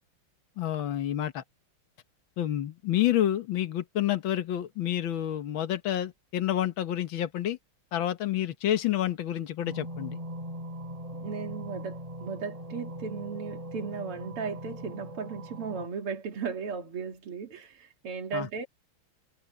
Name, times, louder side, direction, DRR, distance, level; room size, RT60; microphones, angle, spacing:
voice 1, 0.6-1.4 2.4-7.6 7.9-10.2 18.3-18.5, left 12 dB, 65° left, 2.0 m, -29 dB
sound 1, 9.6-15.9, right 1 dB, 15° right, 2.8 m, -40 dB
voice 2, 11.2-18.7, right 5 dB, 90° right, 3.2 m, -36 dB
omnidirectional pair, 2.4 m